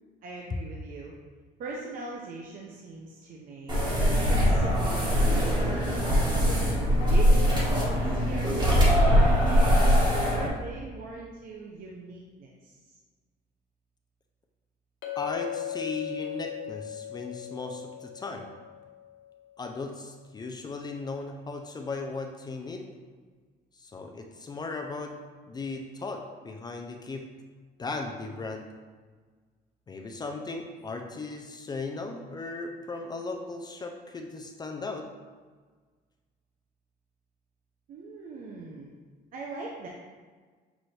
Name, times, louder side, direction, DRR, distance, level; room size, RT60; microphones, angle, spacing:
voice 1, 0.2-1.1 1.6-3.8 4.1-6.2 7.0-8.0 8.3-13.0 37.9-38.9 39.3-39.9, right 3 dB, 55° right, -2 dB, 0.6 m, -41 dB
sound 1, 3.7-10.5, equal, 25° right, 1.3 m, -22 dB
Chink clink, 15.0-19.5, left 12 dB, 90° left, 0.7 m, -38 dB
voice 2, 15.2-18.5 19.6-22.9 23.8-25.2 25.5-27.3 27.8-28.7 29.9-35.1, left 3 dB, 25° left, 3 dB, 0.4 m, -37 dB
6.0 x 2.6 x 3.2 m, 1.4 s
cardioid pair, 110°, 17 cm